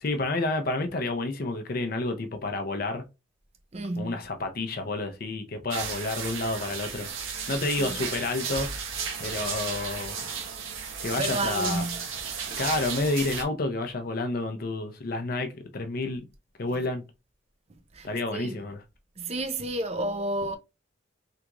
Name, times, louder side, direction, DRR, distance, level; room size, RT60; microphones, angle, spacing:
voice 1, 0.0-3.0 4.0-7.1 7.5-8.7 9.2-10.3 11.0-11.8 12.6-16.2 16.6-17.0 18.0-18.8, left 2 dB, 45° left, 0.5 m, -30 dB
voice 2, 3.7-4.2 7.8-8.0 11.2-12.0 12.5-12.7 17.9-18.6 19.2-20.6, right 1 dB, 30° right, 0.5 m, -31 dB
sound 1, 5.7-13.4, right 6 dB, 80° right, 0.9 m, -34 dB
3.5 x 2.4 x 2.9 m
head